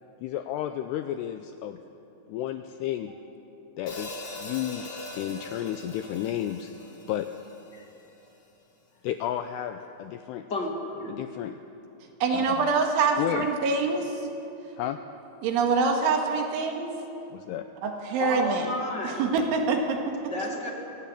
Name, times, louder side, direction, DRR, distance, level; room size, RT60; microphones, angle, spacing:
voice 1, 0.2-1.8 2.3-3.1 3.8-4.1 4.4-4.9 5.2-6.7 7.1-7.3 9.0-10.4 11.1-11.6 12.3-12.7 13.1-13.5 14.8-15.0 17.3-17.7, left 11 dB, 85° left, 8 dB, 2.4 m, -32 dB
Hi-hat, 3.9-8.1, left 2 dB, 50° left, 1.1 m, -41 dB
voice 2, 10.5-11.2 18.2-19.2 20.2-20.7, left 2 dB, 30° left, -1 dB, 2.2 m, -31 dB
voice 3, 12.2-14.1 15.4-16.9 17.8-18.6 19.0-20.0, right 4 dB, 85° right, 3 dB, 4.3 m, -25 dB
23.0 x 18.0 x 8.6 m, 2.9 s
omnidirectional pair, 5.4 m